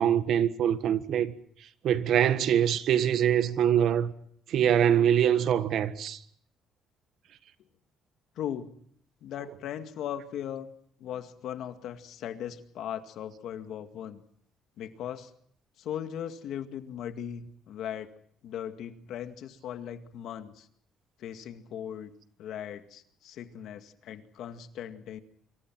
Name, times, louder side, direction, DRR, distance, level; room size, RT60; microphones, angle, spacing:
voice 1, 0.0-1.3 1.8-4.1 4.5-6.2, right 9 dB, 60° right, 1.5 m, -24 dB
voice 2, 8.4-8.8 9.2-10.7 11.0-14.2 14.8-15.3 15.8-18.1 18.4-20.7 21.2-22.1 22.4-25.2, left 9 dB, 65° left, 2.0 m, -38 dB
26.0 x 24.0 x 6.2 m
cardioid pair, 140°, 0 cm